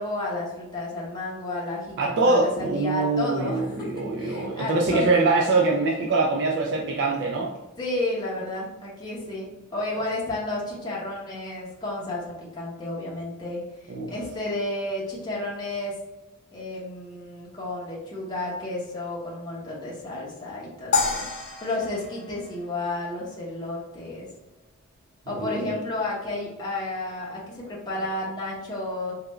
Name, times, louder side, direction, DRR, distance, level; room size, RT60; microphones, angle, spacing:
voice 1, 0.0-3.9 4.2-5.1 7.8-9.5 9.7-12.2 12.5-15.9 16.5-21.3 21.6-24.3 25.3-29.1, left 2 dB, 20° left, -6 dB, 0.8 m, -32 dB
voice 2, 2.0-7.5 13.9-14.1 25.3-25.7, right 3 dB, 50° right, -1 dB, 0.4 m, -23 dB
sound 1, 20.9-23.3, left 4 dB, 50° left, 0.8 m, -29 dB
3.3 x 2.3 x 3.0 m, 1.1 s
head